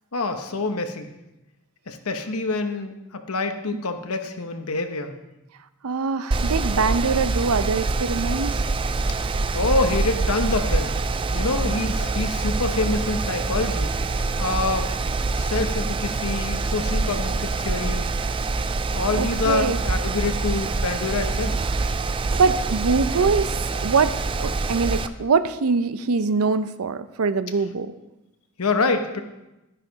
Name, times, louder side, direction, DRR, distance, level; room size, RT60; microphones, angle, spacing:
voice 1, 0.1-1.1 1.9-5.2 9.5-11.0 11.3-13.9 14.4-14.9 15.3-18.1 18.9-21.7 28.6-29.2, left 3 dB, 80° left, 7 dB, 1.0 m, -26 dB
voice 2, 5.8-8.6 11.6-11.8 19.2-19.8 22.3-23.5 23.8-27.9, right 4 dB, 85° right, 13 dB, 0.6 m, -23 dB
Mechanical fan, 6.3-25.1, right 3 dB, 25° right, 0.4 m, -25 dB
11.0 x 10.0 x 4.0 m, 0.96 s
head